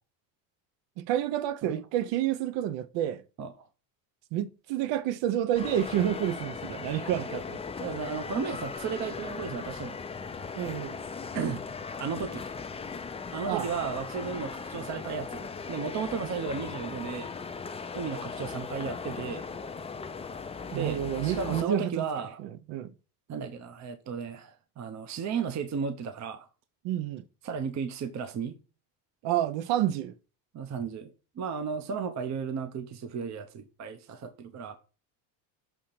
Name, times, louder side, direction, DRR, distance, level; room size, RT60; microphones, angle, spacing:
voice 1, 1.0-3.2 4.3-7.6 10.5-11.0 13.5-13.7 20.7-22.0 22.4-22.9 26.8-27.2 29.2-30.1, right 11 dB, 65° right, 0.8 m, -29 dB
sound 1, 5.5-21.6, left 5 dB, 15° left, 0.4 m, -38 dB
voice 2, 7.8-10.0 11.3-11.6 12.0-12.4 13.3-17.3 17.9-19.4 20.7-22.4 23.3-26.5 27.4-28.6 30.5-34.8, right 6 dB, 35° right, 0.8 m, -34 dB
7.0 x 2.9 x 5.7 m
cardioid pair, 105°, 47 cm